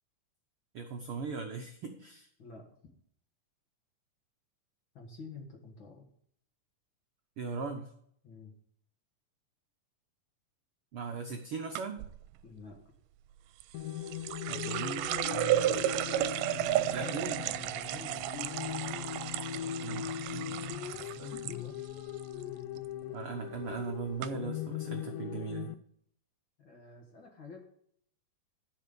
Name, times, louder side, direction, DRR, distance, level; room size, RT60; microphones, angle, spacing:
voice 1, 0.7-2.3 7.4-7.9 10.9-12.0 14.5-15.1 16.9-17.4 19.8-20.0 20.3-20.4 21.2-21.3 23.1-25.7, right 5 dB, 70° right, 3 dB, 1.3 m, -38 dB
voice 2, 4.9-6.1 8.2-8.5 12.4-12.8 15.6-16.2 16.5-18.4 19.5-21.9 22.4-22.6 26.6-27.6, left 3 dB, 45° left, 1 dB, 2.0 m, -49 dB
sound 1, 11.8-12.1 13.6-21.6 21.9-22.4 22.8-23.1 23.8-23.9 24.2-24.3, right 14 dB, 85° right, 2.2 m, -33 dB
sound 2, 13.7-25.7, left 11 dB, 90° left, 2.2 m, -40 dB
13.0 x 5.6 x 6.8 m, 0.66 s
omnidirectional pair, 3.8 m